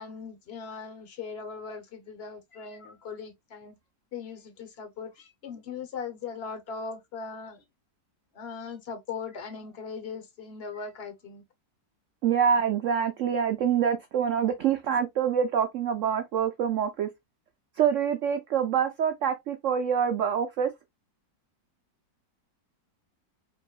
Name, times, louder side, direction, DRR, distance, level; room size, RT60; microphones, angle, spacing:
voice 1, 0.0-3.7 4.1-7.6 8.3-11.4, left 5 dB, 45° left, 0.9 m, -39 dB
voice 2, 12.2-17.1 17.8-20.7, right 8 dB, 85° right, 0.6 m, -26 dB
5.3 x 3.0 x 2.3 m
omnidirectional pair, 1.9 m